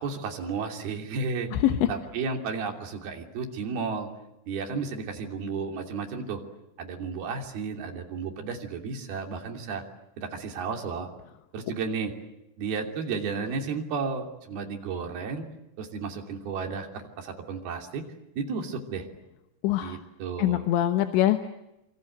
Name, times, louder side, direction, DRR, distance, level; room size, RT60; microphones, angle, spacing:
voice 1, 0.0-1.5 1.9-4.1 4.5-6.4 6.8-9.8 10.2-11.1 11.5-12.1 12.6-15.4 15.8-18.0 18.4-19.1 19.8-20.6, right 5 dB, 55° right, 3 dB, 4.6 m, -33 dB
voice 2, 1.5-1.9 19.6-20.0 20.4-21.5, left 12 dB, 75° left, 8 dB, 3.3 m, -23 dB
27.5 x 25.5 x 8.0 m, 0.89 s
omnidirectional pair, 5.6 m